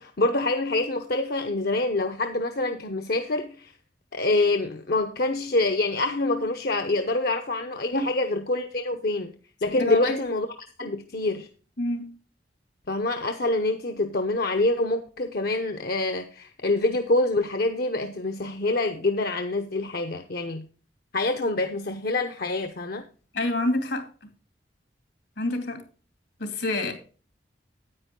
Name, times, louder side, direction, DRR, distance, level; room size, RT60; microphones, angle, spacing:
voice 1, 0.0-3.7 4.1-10.5 10.8-11.5 12.9-20.7 21.1-23.1, left 2 dB, 60° left, 0.8 m, -26 dB
voice 2, 9.7-10.2 11.8-12.1 23.3-24.1 25.4-25.8 26.4-26.9, left 2 dB, 80° left, 2.6 m, -27 dB
9.8 x 8.9 x 3.7 m
head